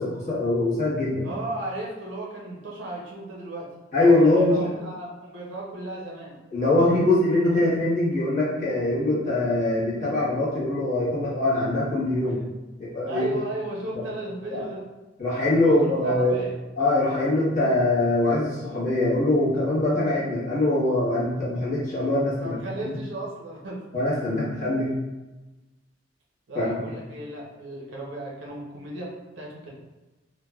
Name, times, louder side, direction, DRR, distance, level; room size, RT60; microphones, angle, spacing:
voice 1, 0.0-1.3 3.9-4.7 6.5-12.4 12.8-13.3 14.5-14.6 15.2-16.4 16.8-23.0 23.9-25.0 26.5-26.7, left 2 dB, 40° left, -8 dB, 1.0 m, -23 dB
voice 2, 1.2-3.7 4.0-6.4 12.2-12.5 13.1-14.8 15.6-16.5 22.4-23.8 26.5-29.7, right 2 dB, 80° right, -3 dB, 0.6 m, -35 dB
3.2 x 2.1 x 2.2 m, 1.1 s
head